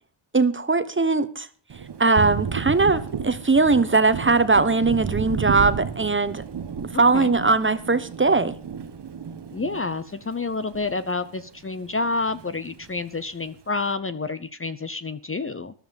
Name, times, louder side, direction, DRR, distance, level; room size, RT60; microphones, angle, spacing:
voice 1, 0.3-1.5 2.0-6.4 6.8-8.6, right 3 dB, 25° right, 1.1 m, -20 dB
Thunder, 1.7-11.5 11.8-12.9, right 7 dB, 55° right, 1.2 m, -33 dB
voice 2, 9.5-15.7, left 3 dB, 25° left, 0.8 m, -29 dB
13.5 x 12.0 x 5.3 m
wide cardioid pair, 100°, 48 cm